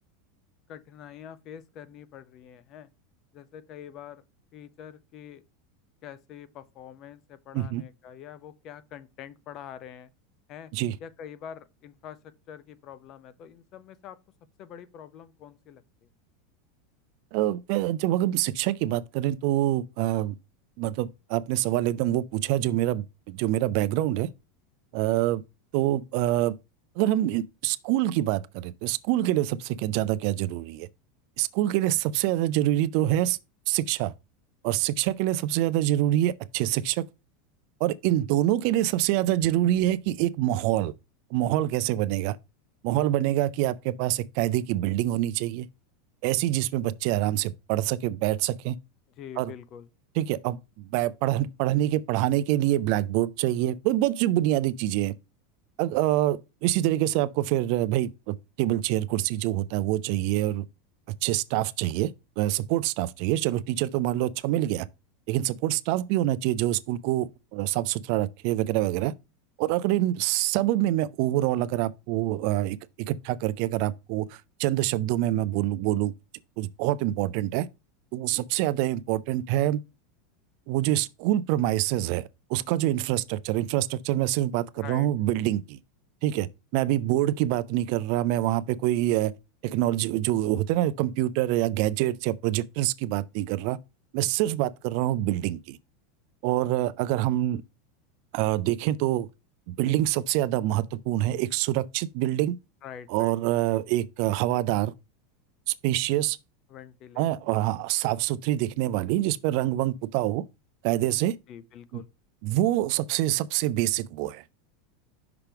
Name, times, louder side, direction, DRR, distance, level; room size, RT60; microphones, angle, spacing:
voice 1, 0.7-2.9 3.3-4.2 4.5-5.4 6.0-10.1 10.5-10.7 11.0-14.2 14.6-16.1 49.2-49.9 78.2-78.7 84.8-85.1 102.8-103.3 106.7-107.3 111.5-112.1, left 9 dB, 35° left, 0.5 m, -45 dB
voice 2, 17.3-20.3 20.8-24.3 24.9-25.4 25.7-26.6 27.0-30.9 31.4-33.4 33.7-34.1 34.6-37.0 37.8-40.9 41.3-42.4 42.8-45.7 46.2-48.8 49.4-49.5 50.2-55.1 55.8-60.6 61.2-62.1 62.4-64.9 65.3-69.1 69.6-76.1 76.6-77.7 78.1-79.8 80.7-85.8 86.2-86.5 86.7-89.3 89.6-93.8 94.1-95.8 96.4-97.6 98.3-99.3 99.7-102.6 103.1-104.9 105.7-106.4 107.2-110.4 110.8-111.3 111.9-112.0 112.4-114.4, right 14 dB, 50° right, 0.4 m, -26 dB
5.9 x 5.7 x 3.4 m
supercardioid pair, 160°, 0 cm